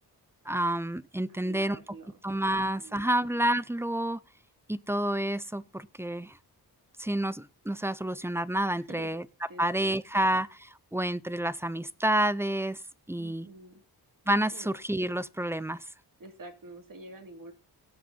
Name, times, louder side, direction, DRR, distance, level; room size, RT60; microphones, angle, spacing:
voice 1, 0.5-1.8 2.2-4.2 4.7-6.3 7.0-9.2 9.6-12.8 13.1-13.5 14.3-15.8, right 1 dB, 5° right, 0.6 m, -29 dB
voice 2, 1.3-2.1 2.5-3.1 8.7-9.1 9.5-10.2 13.2-13.8 14.5-14.7 16.2-17.5, right 2 dB, 55° right, 3.1 m, -48 dB
16.5 x 7.6 x 4.1 m
wide cardioid pair, 90°, 40 cm